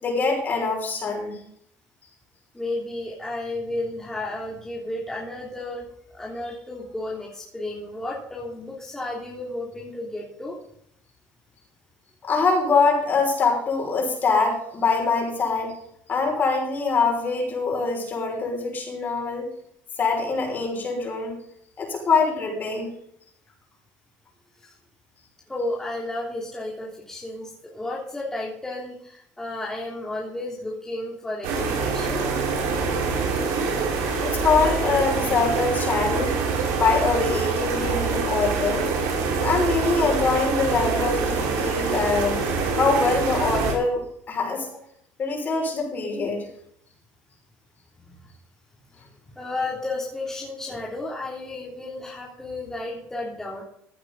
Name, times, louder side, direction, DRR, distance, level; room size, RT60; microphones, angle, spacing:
voice 1, 0.0-1.4 12.2-15.7 16.1-19.5 20.0-21.3 21.8-22.9 34.2-36.3 36.8-38.9 39.4-42.4 42.8-44.7 45.2-46.5, left 4 dB, 35° left, 0 dB, 6.0 m, -24 dB
voice 2, 2.5-5.9 6.1-10.6 24.6-24.7 25.5-32.2 48.0-48.1 49.0-49.1 49.3-53.6, left 2 dB, 10° left, -4 dB, 3.2 m, -32 dB
sound 1, 31.4-43.7, right 4 dB, 75° right, 4.7 m, -25 dB
15.5 x 9.6 x 4.1 m, 0.69 s
cardioid pair, 110°, 5 cm